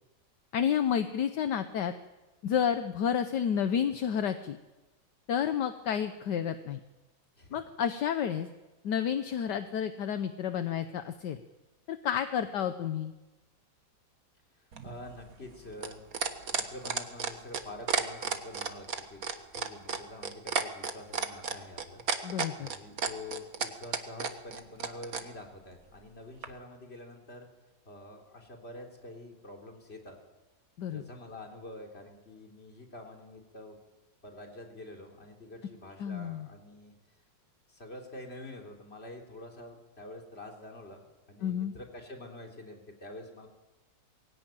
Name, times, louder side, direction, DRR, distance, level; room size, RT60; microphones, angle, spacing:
voice 1, 0.5-1.9 2.4-4.6 5.3-6.8 7.5-8.5 8.8-11.4 11.9-13.1 22.2-22.7 30.8-31.0 36.0-36.5 41.4-41.7, left 8 dB, 70° left, 9 dB, 1.5 m, -30 dB
sound 1, 14.7-25.3 26.4-26.5, right 6 dB, 55° right, 1.8 m, -32 dB
voice 2, 14.8-16.0 16.5-19.2 19.5-22.0 22.6-27.5 27.9-30.2 30.9-33.8 34.2-36.9 37.7-43.5, left 2 dB, 35° left, 1 dB, 3.6 m, -47 dB
21.5 x 17.0 x 9.0 m, 1.1 s
omnidirectional pair, 2.0 m